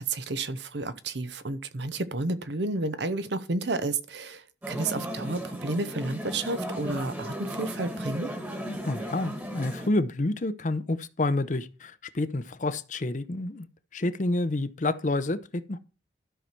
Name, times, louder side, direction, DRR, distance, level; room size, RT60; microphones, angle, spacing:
voice 1, 0.0-8.3, right 2 dB, 70° right, 0.9 m, -31 dB
sound 1, 4.6-9.9, equal, 10° right, 1.5 m, -35 dB
voice 2, 8.6-13.7 13.9-15.8, left 2 dB, 45° left, 0.7 m, -29 dB
12.5 x 5.8 x 4.5 m
head